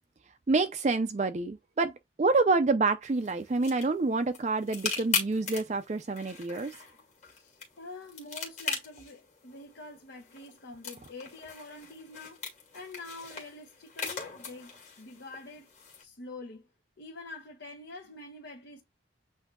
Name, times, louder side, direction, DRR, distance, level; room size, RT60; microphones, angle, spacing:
voice 1, 0.5-6.8, right 3 dB, 35° right, 0.4 m, -27 dB
sound 1, 3.0-16.0, left 5 dB, 40° left, 1.9 m, -40 dB
voice 2, 7.2-12.4 12.7-15.7 16.0-16.7 17.0-18.8, left 2 dB, 75° left, 1.1 m, -46 dB
8.0 x 2.7 x 2.3 m
head